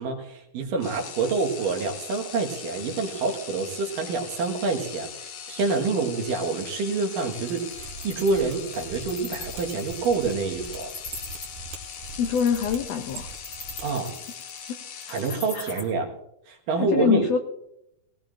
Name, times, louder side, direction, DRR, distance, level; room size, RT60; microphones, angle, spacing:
voice 1, 0.0-10.9 13.8-14.2 15.1-16.1 16.5-17.3, right 4 dB, 85° right, 2 dB, 3.1 m, -27 dB
sound 1, 0.8-15.8, left 7 dB, 65° left, 1.4 m, -40 dB
Wild animals, 7.2-15.8, left 3 dB, 40° left, 3.0 m, -41 dB
Mechanisms, 7.7-13.8 14.1-14.2, right 4 dB, 65° right, 2.5 m, -42 dB
voice 2, 12.2-13.3 15.5-15.7 16.9-17.4, left 7 dB, 90° left, 7 dB, 1.4 m, -24 dB
18.0 x 18.0 x 2.5 m, 0.82 s
omnidirectional pair, 3.8 m